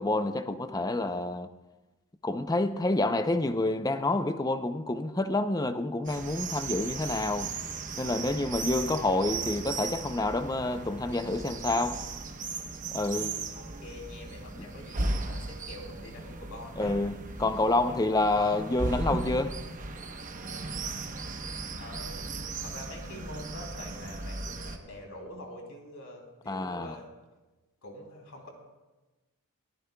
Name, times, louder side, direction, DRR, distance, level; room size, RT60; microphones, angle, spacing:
voice 1, 0.0-1.5 2.2-7.5 8.0-12.0 12.9-13.4 14.6-14.7 16.8-19.6 26.5-26.9, left 2 dB, 15° left, 0.5 m, -28 dB
sound 1, 6.0-24.8, right 3 dB, 35° right, 0.9 m, -37 dB
voice 2, 13.5-17.0 18.3-18.7 21.8-27.1 27.8-28.5, left 1 dB, 65° left, 2.9 m, -45 dB
22.0 x 15.0 x 2.3 m
head